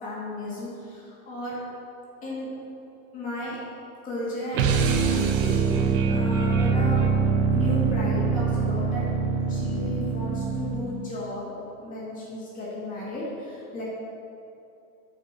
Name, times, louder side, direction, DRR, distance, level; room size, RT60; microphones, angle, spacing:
voice 1, 0.0-1.6 2.2-2.5 3.1-3.6 4.0-7.1 7.5-9.1 9.5-11.5 11.8-13.8, left 1 dB, 15° left, -7 dB, 2.0 m, -34 dB
sound 1, 4.5-11.0, right 5 dB, 40° right, 0.6 m, -24 dB
14.0 x 5.4 x 4.3 m, 2.7 s
supercardioid pair, 175°, 45 cm